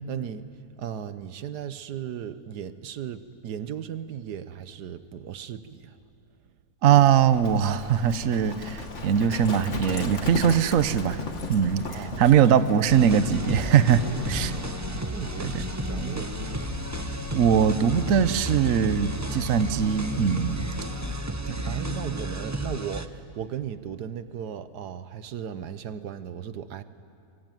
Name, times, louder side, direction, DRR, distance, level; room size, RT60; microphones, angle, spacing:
voice 1, 0.1-0.5 0.8-6.0 11.9-12.4 14.2-14.8 15.1-16.4 21.7-26.8, right 9 dB, 85° right, 12 dB, 1.5 m, -36 dB
voice 2, 6.8-11.2 11.5-14.6 15.4-15.6 17.3-20.7, right 8 dB, 60° right, 12 dB, 1.2 m, -21 dB
Livestock farm animals working animals, 7.3-14.7, left 3 dB, 50° left, 2.2 m, -36 dB
sound 1, 12.9-23.1, right 2 dB, 15° right, 0.7 m, -33 dB
sound 2, 13.9-21.2, left 9 dB, 75° left, 1.4 m, -38 dB
26.0 x 24.0 x 9.2 m, 2.4 s
omnidirectional pair, 1.7 m